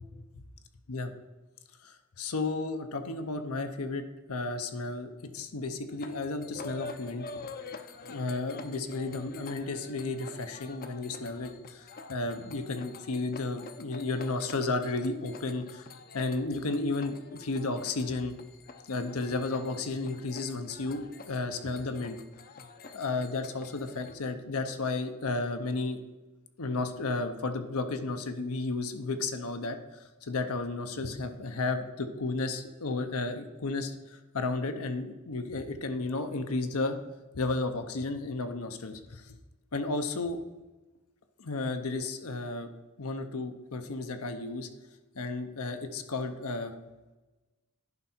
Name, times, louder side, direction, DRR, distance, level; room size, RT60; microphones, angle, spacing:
voice 1, 1.8-7.2 8.1-15.9 16.1-18.3 18.9-22.2 22.9-26.0 26.6-37.0 37.3-39.4 39.7-40.4 41.4-42.7 43.0-44.7 45.2-46.7, left 3 dB, 75° left, 7 dB, 0.8 m, -33 dB
sound 1, 5.9-24.2, left 4 dB, 40° left, 0.6 m, -47 dB
11.0 x 5.3 x 4.4 m, 1.1 s
head